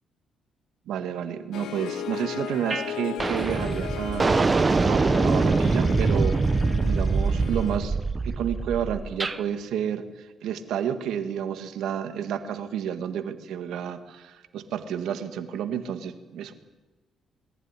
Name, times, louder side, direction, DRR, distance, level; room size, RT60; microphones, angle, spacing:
voice 1, 0.9-4.6 4.9-6.4 6.8-10.0 10.4-16.5, right 9 dB, 80° right, 9 dB, 1.8 m, -30 dB
Harp, 1.5-7.8, left 9 dB, 80° left, 1.7 m, -36 dB
sound 1, 2.7-2.9 3.2-9.4, right 3 dB, 30° right, 1.0 m, -24 dB
21.5 x 15.0 x 9.9 m, 1.2 s
cardioid pair, 90°, 0 cm